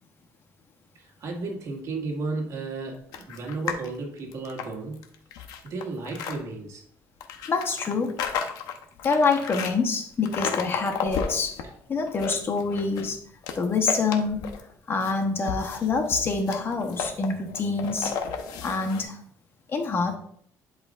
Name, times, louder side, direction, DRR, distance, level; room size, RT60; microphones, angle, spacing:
voice 1, 0.9-5.0 5.7-6.8 11.6-11.7, right 3 dB, 55° right, 1 dB, 1.9 m, -33 dB
sound 1, 3.1-3.9 4.3-6.4 7.2-9.7 10.2-11.6 12.0-13.1 13.4-14.7 15.0-19.0, left 7 dB, 85° left, 0.9 m, -33 dB
voice 2, 7.5-8.2 9.0-11.6 11.9-13.2 13.5-14.5 14.9-18.1 18.6-19.2 19.7-20.2, left 4 dB, 35° left, 5 dB, 1.1 m, -26 dB
11.0 x 4.9 x 2.5 m, 0.64 s
cardioid pair, 125°, 6 cm